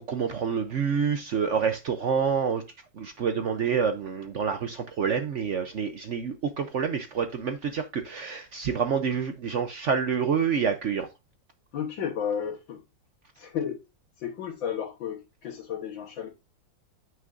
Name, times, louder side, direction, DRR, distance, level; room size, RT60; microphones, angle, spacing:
voice 1, 0.0-2.6 3.0-11.1, right 6 dB, 65° right, 0.7 m, -27 dB
voice 2, 11.7-12.8 13.4-13.8 14.2-16.3, left 8 dB, 75° left, 2.1 m, -32 dB
9.2 x 6.2 x 2.5 m
omnidirectional pair, 2.1 m